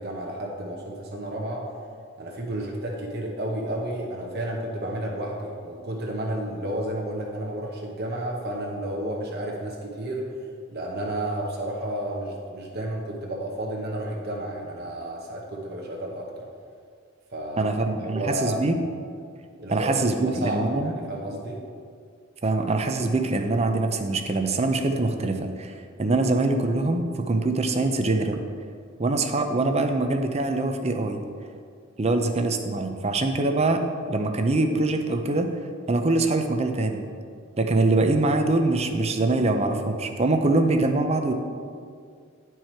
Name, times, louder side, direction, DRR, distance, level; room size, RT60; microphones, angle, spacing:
voice 1, 0.0-1.7 2.2-10.3 10.7-16.5 17.3-17.7 18.0-18.6 19.6-19.9 20.2-21.6, right 1 dB, 50° right, -1 dB, 0.9 m, -31 dB
voice 2, 17.6-18.8 19.7-20.9 22.4-25.7 26.0-28.4 29.0-31.2 32.0-33.8 34.1-35.5 35.9-37.0 37.6-41.3, right 2 dB, 30° right, 5 dB, 0.6 m, -23 dB
10.5 x 4.7 x 4.5 m, 2.2 s
head